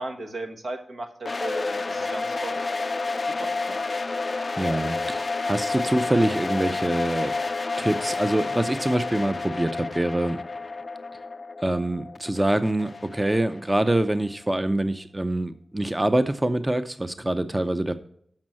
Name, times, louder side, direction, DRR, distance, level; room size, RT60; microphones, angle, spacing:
voice 1, 0.0-2.5 3.4-3.8, right 2 dB, 80° right, 4 dB, 1.3 m, -36 dB
sound 1, 1.2-14.1, left 3 dB, 50° left, 0.4 m, -30 dB
voice 2, 4.6-7.3 7.8-10.4 11.6-17.9, right 1 dB, 20° right, 10 dB, 0.5 m, -25 dB
7.3 x 5.4 x 7.4 m, 0.67 s
cardioid pair, 55°, 0 cm